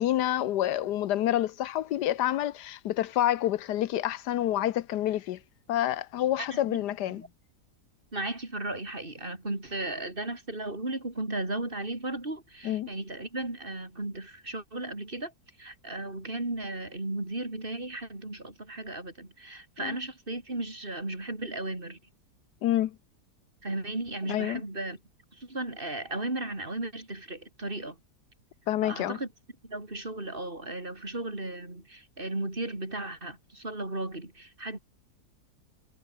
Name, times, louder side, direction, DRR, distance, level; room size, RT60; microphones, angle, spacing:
voice 1, 0.0-5.4 5.7-7.2 12.6-12.9 19.8-20.0 22.6-22.9 24.3-24.6 28.7-29.2, left 12 dB, 80° left, 1.3 m, -28 dB
voice 2, 6.4-6.8 7.1-7.3 8.1-15.3 15.6-22.0 23.6-25.0 25.3-28.0 28.8-29.3 29.6-34.8, right 2 dB, 30° right, 4.2 m, -35 dB
omnidirectional pair, 1.8 m